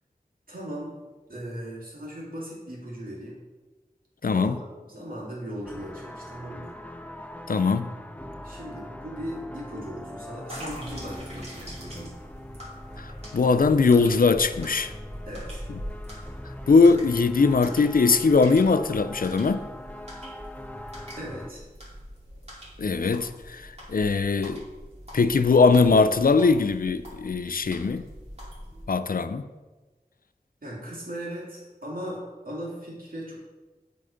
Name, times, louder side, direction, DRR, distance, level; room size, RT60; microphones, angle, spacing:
voice 1, 0.5-0.9 1.3-3.4 4.3-4.5 4.8-6.7 8.4-12.1 15.3-15.7 21.2-21.6 30.6-33.4, equal, 65° right, -6 dB, 2.4 m, -38 dB
voice 2, 4.2-4.5 7.5-7.9 13.0-14.9 16.7-19.6 22.8-24.6 25.1-28.1 28.9-29.5, left 4 dB, 65° left, 12 dB, 0.4 m, -21 dB
sound 1, 5.6-21.5, left 1 dB, 10° left, 0.5 m, -42 dB
sound 2, 10.5-28.8, equal, 45° right, 2.5 m, -43 dB
7.7 x 4.0 x 5.0 m, 1.2 s
wide cardioid pair, 50°, 16 cm